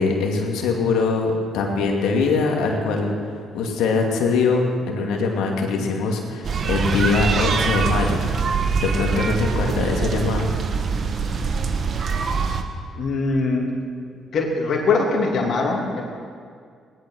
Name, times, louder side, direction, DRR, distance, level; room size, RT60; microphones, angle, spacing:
voice 1, 0.0-8.2 8.8-10.5, left 4 dB, 85° left, 1 dB, 2.3 m, -22 dB
sound 1, 6.4-12.6, right 5 dB, 55° right, 1.3 m, -23 dB
voice 2, 12.9-13.7 14.3-16.0, left 3 dB, 65° left, -1 dB, 2.8 m, -22 dB
18.0 x 11.5 x 6.4 m, 2.1 s
supercardioid pair, 70°, 0 cm